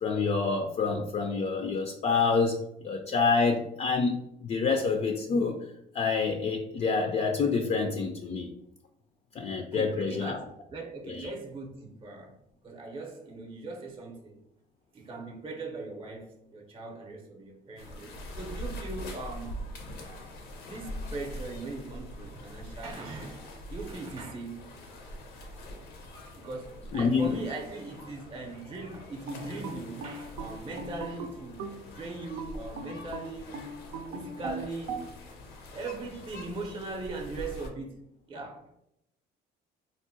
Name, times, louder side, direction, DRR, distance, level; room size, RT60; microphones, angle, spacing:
voice 1, 0.0-5.6 5.9-8.5 9.4-10.4 11.1-11.3 26.9-27.3, left 4 dB, 40° left, 0.4 m, -27 dB
voice 2, 9.7-12.3 12.6-14.4 14.9-19.6 20.7-23.4 23.7-24.7 26.4-31.6 31.9-33.6 34.1-35.1 35.7-38.7, right 3 dB, 30° right, 0.6 m, -40 dB
sound 1, 17.8-37.7, left 1 dB, 85° left, 0.7 m, -44 dB
sound 2, 29.3-31.9 32.4-35.1, right 4 dB, 85° right, 0.5 m, -39 dB
3.7 x 2.1 x 2.6 m
supercardioid pair, 85°, 18 cm